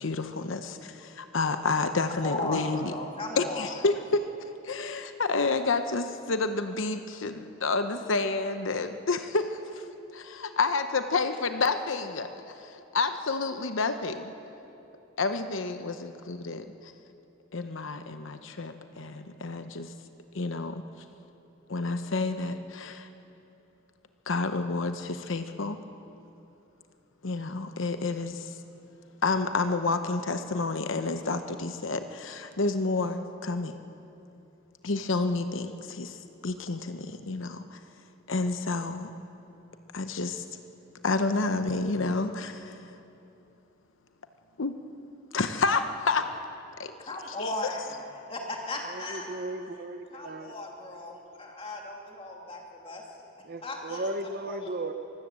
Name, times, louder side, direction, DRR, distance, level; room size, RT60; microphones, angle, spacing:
voice 1, 0.0-2.9 3.4-4.4 4.6-9.8 10.1-12.3 12.5-14.3 15.2-16.9 17.5-19.9 20.3-20.8 21.7-23.1 24.3-25.8 27.2-28.6 29.2-33.8 34.8-37.8 38.3-39.1 39.9-40.4 41.0-43.0 44.6-44.7 45.3-46.3 46.8-46.9 47.4-47.5, left 3 dB, 70° left, 9 dB, 0.8 m, -29 dB
voice 2, 2.2-2.6 2.9-3.7 47.1-48.0 48.3-49.3 50.1-53.0 53.6-54.1 54.4-54.7, left 2 dB, 30° left, 0 dB, 2.7 m, -36 dB
voice 3, 48.9-50.6 53.4-54.9, right 2 dB, 50° right, 9 dB, 0.9 m, -36 dB
23.5 x 15.0 x 7.6 m, 2.9 s
head